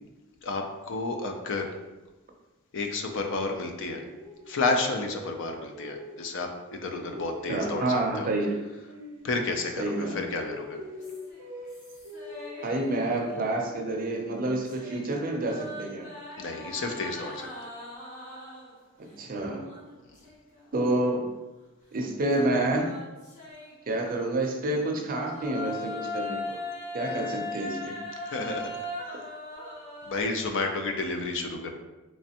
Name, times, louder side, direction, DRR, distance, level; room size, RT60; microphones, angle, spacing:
voice 1, 0.4-1.7 2.7-4.0 4.5-8.3 9.2-10.8 16.4-17.7 27.0-27.2 28.2-28.7 30.1-31.7, left 3 dB, 60° left, 4 dB, 0.5 m, -31 dB
sound 1, 3.7-6.5 6.8-9.7 10.0-13.5, left 2 dB, 90° right, 0.6 m, -44 dB
voice 2, 7.5-8.6 9.8-10.2 12.6-16.1 19.0-19.7 20.7-21.3 21.9-23.0 23.9-26.6 26.9-27.9, right 2 dB, 40° right, 2 dB, 0.5 m, -28 dB
sound 2, 11.0-13.9 14.2-18.9 19.6-20.6 21.0-21.1 22.3-24.5 25.0-30.2, left 2 dB, 35° left, 0.9 m, -40 dB
3.3 x 3.1 x 2.8 m, 1.1 s
head